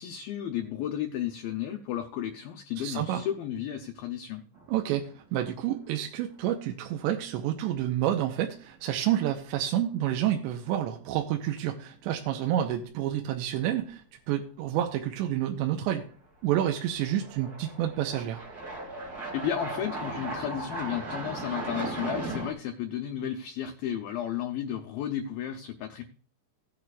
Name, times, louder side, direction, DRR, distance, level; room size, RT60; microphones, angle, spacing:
voice 1, 0.0-4.4 19.3-26.0, left 10 dB, 80° left, 5 dB, 2.1 m, -33 dB
voice 2, 2.8-3.2 4.7-16.0 16.4-18.4, right 11 dB, 90° right, 4 dB, 2.9 m, -29 dB
sound 1, 4.6-5.2 5.6-5.7 8.5-8.6 10.0-10.2 10.6-10.7 16.0-16.1 16.8-22.5, right 2 dB, 35° right, 1.7 m, -37 dB
16.5 x 8.9 x 2.4 m, 0.43 s
omnidirectional pair, 5.1 m